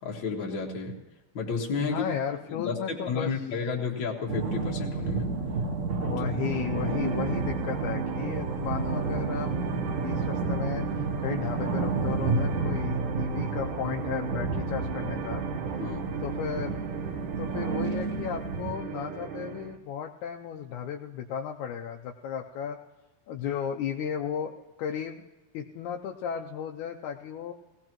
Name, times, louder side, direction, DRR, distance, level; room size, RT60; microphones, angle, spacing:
voice 1, 0.0-1.0 1.3-2.1 2.5-5.3 6.2-6.3 15.8-16.1, left 4 dB, 45° left, -2 dB, 2.1 m, -32 dB
voice 2, 1.8-3.3 6.0-10.9 11.2-15.4 16.2-16.8 17.4-22.8 23.3-25.2 25.5-27.5, left 8 dB, 80° left, 2 dB, 2.0 m, -34 dB
sound 1, 4.3-18.7, right 3 dB, 60° right, 2.6 m, -31 dB
sound 2, 6.4-19.8, right 7 dB, 80° right, 2.7 m, -36 dB
19.0 x 17.0 x 3.0 m, 1.1 s
omnidirectional pair, 3.7 m